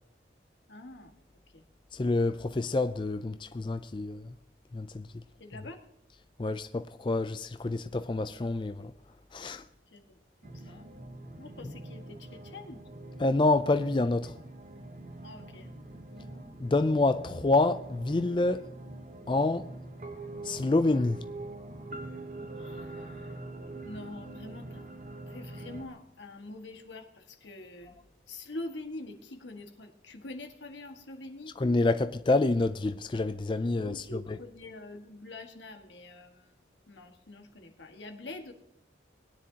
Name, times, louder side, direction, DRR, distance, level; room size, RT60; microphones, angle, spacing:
voice 1, 0.7-1.6 5.4-5.8 9.9-10.8 11.3-12.8 15.2-15.7 22.6-23.4 23.8-28.0 28.3-31.6 33.8-38.5, left 2 dB, 85° left, 1.7 m, -45 dB
voice 2, 1.9-4.2 4.7-5.0 6.4-8.9 9.3-9.6 13.2-14.3 16.6-18.6 19.3-19.7 20.4-21.2 31.6-34.0, left 2 dB, 25° left, 0.4 m, -27 dB
sound 1, 10.4-25.9, right 2 dB, 40° right, 1.1 m, -44 dB
21.0 x 9.9 x 2.9 m
head